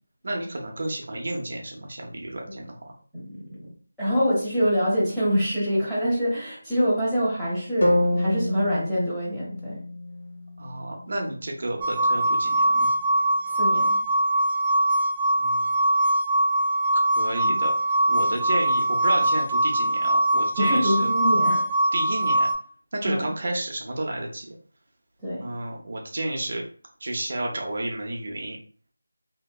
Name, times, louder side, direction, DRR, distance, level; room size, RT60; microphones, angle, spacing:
voice 1, 0.2-2.9 10.6-12.9 15.4-15.7 16.9-17.7 18.1-21.1 21.9-22.5 22.9-24.6 25.4-26.6 27.0-28.6, right 1 dB, 50° right, 0 dB, 0.7 m, -31 dB
voice 2, 3.1-3.7 4.0-9.8 13.5-14.0 17.4-17.6 20.6-21.7 23.0-23.3 25.2-25.5, equal, ahead, -14 dB, 0.8 m, -25 dB
sound 1, 7.8-11.9, left 1 dB, 65° left, 1.1 m, -28 dB
sound 2, 11.8-22.5, right 1 dB, 20° right, 0.3 m, -22 dB
3.1 x 2.8 x 2.3 m, 0.42 s
figure-of-eight pair, 170°, 0 cm